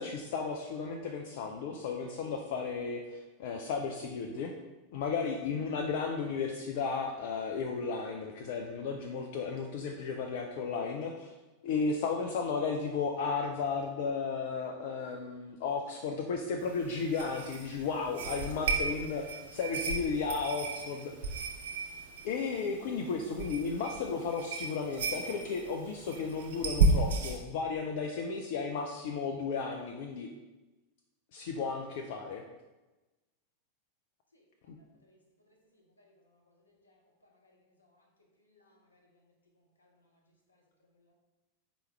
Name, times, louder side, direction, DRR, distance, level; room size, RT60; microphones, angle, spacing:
voice 1, 0.0-4.5 4.9-11.3 11.6-21.4 22.2-30.3 31.3-32.4 34.7-34.8, left 5 dB, 55° left, 2 dB, 0.4 m, -34 dB
sound 1, 16.6-27.4, right 3 dB, 65° right, 0.6 m, -34 dB
voice 2, 34.3-35.2 35.4-38.1 38.4-39.3 39.6-41.1, left 1 dB, 80° left, 0 dB, 0.7 m, -69 dB
4.7 x 3.0 x 3.1 m, 1.1 s
figure-of-eight pair, 85°, 0 cm